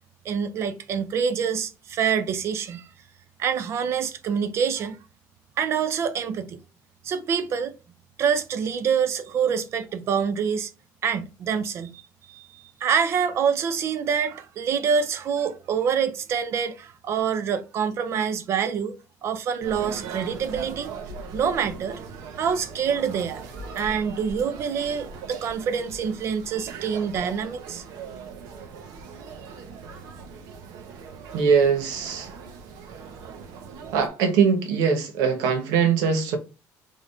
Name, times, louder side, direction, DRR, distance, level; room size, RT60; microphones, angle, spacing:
voice 1, 0.2-2.9 3.4-5.0 5.6-6.6 7.0-7.7 8.2-10.7 11.0-12.0 12.3-18.9 19.2-21.0 21.3-22.0 22.4-23.4 23.7-27.8, right 7 dB, 45° right, 0.6 m, -26 dB
sound 1, 19.6-34.1, right 5 dB, 70° right, 1.0 m, -40 dB
voice 2, 31.3-32.3 33.9-36.4, right 6 dB, 90° right, 1.2 m, -21 dB
3.9 x 3.6 x 3.3 m
cardioid pair, 155°, 6 cm